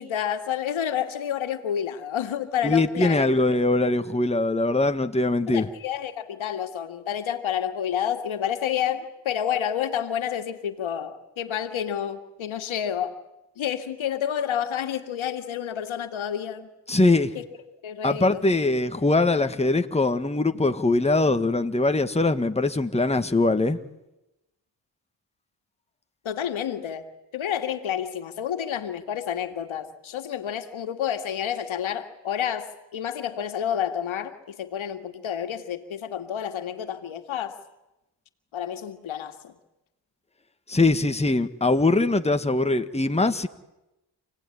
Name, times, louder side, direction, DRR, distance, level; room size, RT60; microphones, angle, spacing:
voice 1, 0.0-3.3 5.5-13.2 13.6-16.7 17.4-17.5 17.8-18.4 26.2-27.1 27.3-37.6 38.5-39.5, left 9 dB, 85° left, 8 dB, 2.2 m, -29 dB
voice 2, 2.6-5.7 16.9-17.3 18.0-23.8 40.7-43.5, left 2 dB, 15° left, 8 dB, 1.6 m, -22 dB
28.5 x 18.0 x 10.0 m, 0.95 s
cardioid pair, 65°, 46 cm